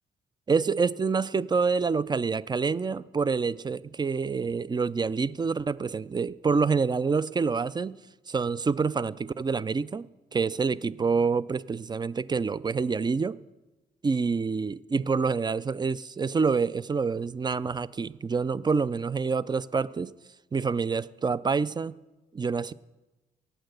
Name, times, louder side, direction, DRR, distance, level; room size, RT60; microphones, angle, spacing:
voice 1, 0.5-8.0 8.3-10.1 10.3-13.4 14.0-20.1 20.5-22.0 22.3-22.7, right 5 dB, 25° right, 0.4 m, -27 dB
8.9 x 8.7 x 7.9 m
cardioid pair, 75°, 18 cm